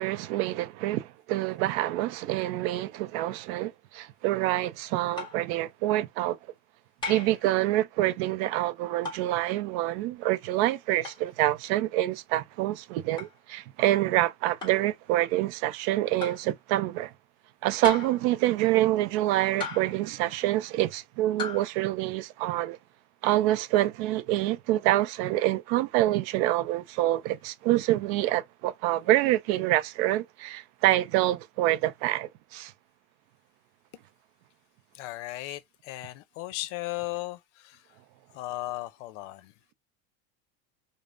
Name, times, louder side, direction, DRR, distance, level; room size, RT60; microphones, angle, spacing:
voice 1, 0.0-6.4 7.1-17.1 17.6-22.8 23.2-32.7, right 15 dB, 60° right, 0.4 m, -26 dB
sound 1, 5.2-5.5 7.0-7.4 9.0-9.3 11.0-11.2 13.2-13.3 14.6-14.9 16.2-16.5 17.8-18.3 19.6-20.0 21.4-21.7, left 3 dB, 15° left, 1.1 m, -36 dB
voice 2, 34.9-37.8 38.3-39.5, left 17 dB, 80° left, 0.6 m, -36 dB
5.2 x 2.0 x 2.5 m
cardioid pair, 170°, 36 cm